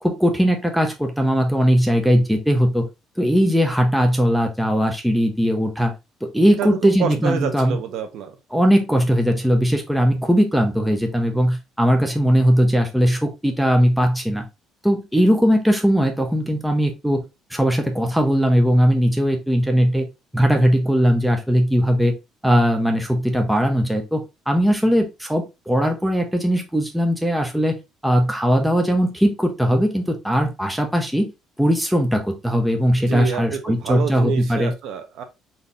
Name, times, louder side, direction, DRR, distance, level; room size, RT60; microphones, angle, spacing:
voice 1, 0.0-2.9 3.2-5.9 6.2-7.8 8.5-14.4 14.8-17.2 17.5-20.1 20.3-22.1 22.4-27.8 28.0-31.3 31.6-34.7, equal, ahead, 0.5 m, -19 dB
voice 2, 6.6-8.3 33.1-35.2, right 7 dB, 55° right, 0.8 m, -27 dB
4.1 x 2.7 x 3.3 m
cardioid pair, 170°, 0 cm